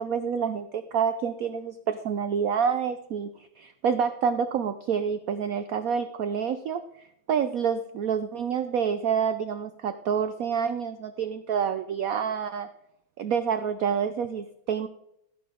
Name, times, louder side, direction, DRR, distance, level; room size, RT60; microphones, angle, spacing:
voice 1, 0.0-12.7 13.2-14.9, right 7 dB, 75° right, 11 dB, 0.8 m, -28 dB
12.0 x 10.0 x 3.6 m, 0.78 s
omnidirectional pair, 2.2 m